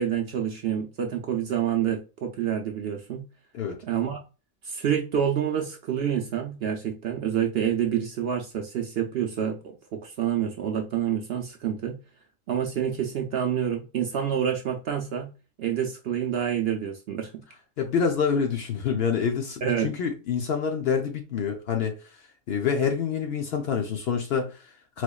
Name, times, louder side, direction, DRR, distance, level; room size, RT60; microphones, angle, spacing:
voice 1, 0.0-3.2 3.9-4.2 4.6-9.6 9.9-12.0 12.5-15.3 15.6-17.4 19.6-19.9, right 9 dB, 65° right, 0.6 m, -27 dB
voice 2, 17.8-22.0 22.5-25.0, left 6 dB, 60° left, 0.7 m, -27 dB
4.2 x 2.9 x 2.3 m
omnidirectional pair, 1.4 m